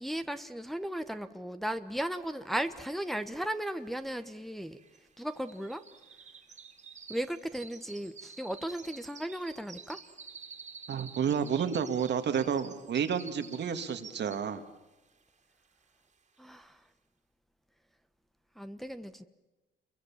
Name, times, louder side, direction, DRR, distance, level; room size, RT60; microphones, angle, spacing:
voice 1, 0.0-4.8 5.2-5.8 7.1-10.0 16.4-16.9 18.5-19.2, right 1 dB, ahead, 8 dB, 1.2 m, -36 dB
sound 1, 2.9-3.0 3.2-14.7 15.1-15.4 15.8-15.9, right 5 dB, 35° right, 2.8 m, -50 dB
voice 2, 10.9-14.6, right 7 dB, 60° right, 8 dB, 2.1 m, -30 dB
28.5 x 23.0 x 7.3 m, 1.1 s
cardioid pair, 90°, 20 cm